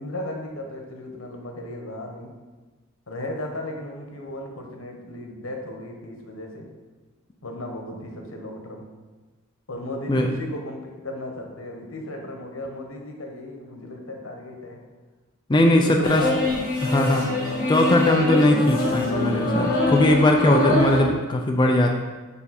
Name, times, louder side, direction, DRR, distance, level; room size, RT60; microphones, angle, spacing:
voice 1, 0.0-2.3 3.1-6.7 7.4-8.8 9.7-14.8 15.7-16.8 17.4-18.0, left 1 dB, 75° left, 2 dB, 1.2 m, -35 dB
voice 2, 15.5-16.2 16.8-17.3 17.7-22.0, left 1 dB, 20° left, 2 dB, 0.5 m, -19 dB
sound 1, 16.0-21.0, left 2 dB, 45° left, 1.7 m, -24 dB
7.1 x 5.3 x 4.3 m, 1.2 s
head